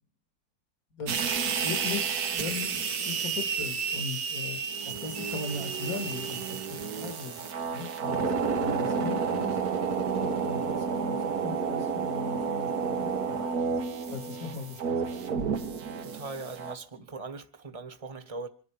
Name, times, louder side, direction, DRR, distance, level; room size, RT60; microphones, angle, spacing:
voice 1, 0.9-7.5 7.7-9.6 10.2-13.7 14.1-15.3, left 4 dB, 60° left, 2.8 m, -39 dB
sound 1, 1.1-16.8, right 5 dB, 70° right, 1.8 m, -31 dB
voice 2, 16.0-18.5, right 3 dB, 20° right, 1.4 m, -40 dB
26.0 x 11.0 x 5.0 m
omnidirectional pair, 1.7 m